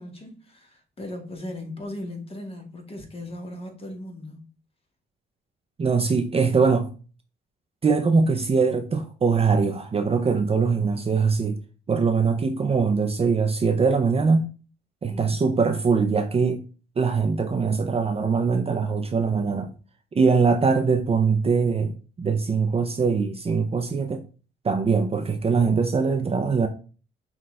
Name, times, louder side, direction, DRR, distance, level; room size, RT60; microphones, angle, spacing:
voice 1, 0.0-4.4 15.1-15.5, left 1 dB, 30° left, 1.3 m, -38 dB
voice 2, 5.8-6.9 7.8-11.6 11.9-14.5 15.0-16.6 17.0-19.7 20.1-24.2 24.6-26.7, right 5 dB, 30° right, 0.5 m, -22 dB
5.7 x 2.4 x 3.2 m
cardioid pair, 90°, 20 cm